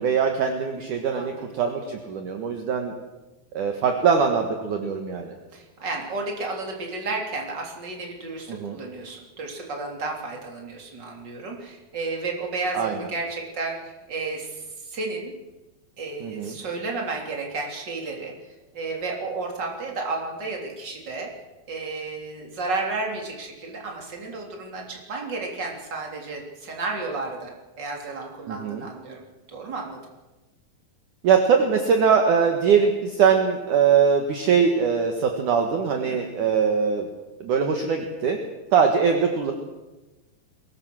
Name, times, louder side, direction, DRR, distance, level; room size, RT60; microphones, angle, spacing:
voice 1, 0.0-2.9 3.5-5.3 8.5-8.8 12.7-12.9 16.2-16.5 28.5-28.8 31.2-37.1 37.4-38.4 38.7-39.5, right 6 dB, 60° right, 4 dB, 2.7 m, -22 dB
voice 2, 1.1-1.5 5.5-15.3 16.0-18.3 18.7-21.3 21.7-30.0 36.1-36.3, right 3 dB, 30° right, 0 dB, 3.6 m, -32 dB
23.0 x 20.5 x 6.3 m, 1.1 s
omnidirectional pair, 4.5 m